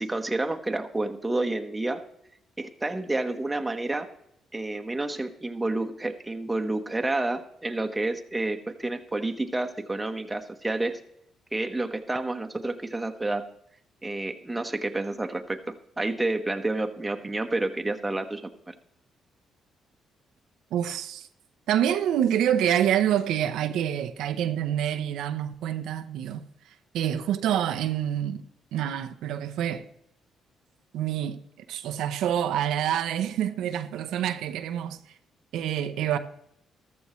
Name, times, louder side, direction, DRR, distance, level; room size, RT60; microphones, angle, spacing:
voice 1, 0.0-2.0 2.6-4.1 4.5-11.0 11.5-13.5 14.0-18.5, right 2 dB, 15° right, 1.2 m, -29 dB
voice 2, 20.7-21.3 21.7-26.4 26.9-28.4 28.7-29.9 30.9-35.0 35.5-36.2, right 10 dB, 85° right, 0.7 m, -27 dB
14.0 x 13.0 x 3.2 m
cardioid pair, 90°, 0 cm